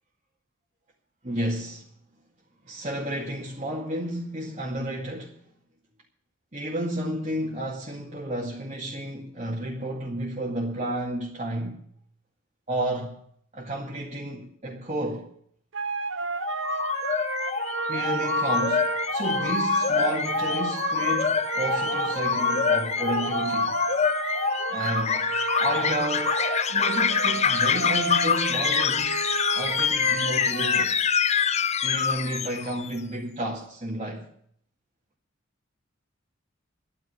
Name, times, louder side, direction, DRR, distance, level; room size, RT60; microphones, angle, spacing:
voice 1, 1.2-1.9 2.6-5.4 6.5-11.8 12.7-13.2 13.5-15.3 17.9-23.8 24.7-25.3 25.6-26.4 26.7-29.2 29.5-31.0 31.8-34.3, right 1 dB, 35° right, 2.1 m, -31 dB
sound 1, 15.7-30.8, right 4 dB, 70° right, 0.9 m, -31 dB
sound 2, 16.4-32.9, left 6 dB, 35° left, 0.6 m, -26 dB
11.5 x 9.8 x 9.7 m
head